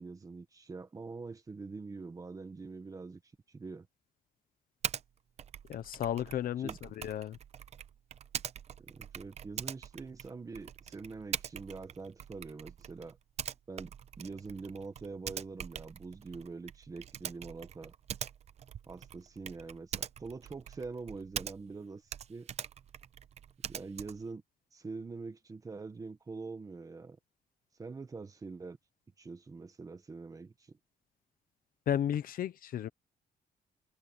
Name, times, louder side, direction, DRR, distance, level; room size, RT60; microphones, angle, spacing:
voice 1, 0.0-3.2 3.5-3.9 6.6-6.8 8.8-13.2 13.7-17.9 18.9-22.0 22.3-22.5 23.7-24.4 24.7-27.2 27.8-28.8 29.2-30.8, right 4 dB, 20° right, 1.4 m, -44 dB
Typing, 4.8-5.0 5.4-21.8 22.1-24.3, right 9 dB, 45° right, 0.6 m, -43 dB
voice 2, 5.7-7.4 31.9-32.9, left 10 dB, 65° left, 1.0 m, -33 dB
wide cardioid pair, 180°, 16 cm